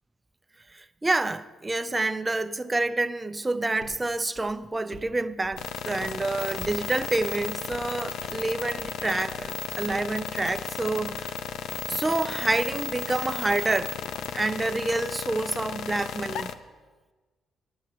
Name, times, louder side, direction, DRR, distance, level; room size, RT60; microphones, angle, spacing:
voice 1, 0.7-11.4 11.9-14.0 14.3-16.5, right 2 dB, 20° right, 0.4 m, -28 dB
sound 1, 3.8-4.0 4.3-5.1 5.4-5.7 6.0-6.2 6.6-6.9 7.1-7.2 7.7-8.0 8.2-8.5 8.8-9.0 9.3-9.5 9.9-10.2 10.5-10.7 11.0-11.9, left 1 dB, 40° left, 2.1 m, -47 dB
sound 2, 5.6-16.5, left 7 dB, 75° left, 0.5 m, -34 dB
10.0 x 6.3 x 7.3 m
cardioid pair, 90°, 0 cm